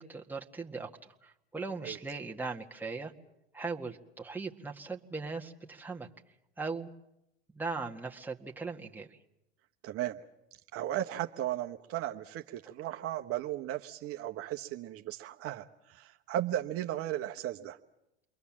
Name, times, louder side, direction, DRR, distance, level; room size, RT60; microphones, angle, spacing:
voice 1, 0.0-3.1 3.5-6.1 6.6-6.9 7.5-9.2, right 4 dB, 5° right, 1 dB, 1.8 m, -39 dB
voice 2, 9.8-10.2 10.7-17.8, right 12 dB, 45° right, 4 dB, 1.1 m, -36 dB
29.0 x 22.5 x 7.4 m, 0.86 s
hypercardioid pair, 90°, 31 cm